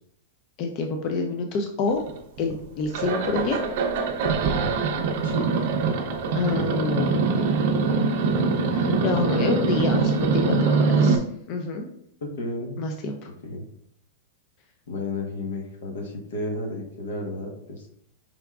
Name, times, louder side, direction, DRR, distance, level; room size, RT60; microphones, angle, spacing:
voice 1, 0.6-2.0 2.4-3.6 6.3-7.2 8.7-11.9 12.8-13.3, left 3 dB, 35° left, 4 dB, 0.4 m, -27 dB
sound 1, 2.1-2.6 2.9-11.2, right 4 dB, 50° right, 0.5 m, -23 dB
voice 2, 12.2-12.8 13.4-13.7 14.9-17.9, left 2 dB, 80° left, 2 dB, 1.0 m, -32 dB
4.8 x 3.5 x 2.3 m, 0.71 s
supercardioid pair, 165°, 0 cm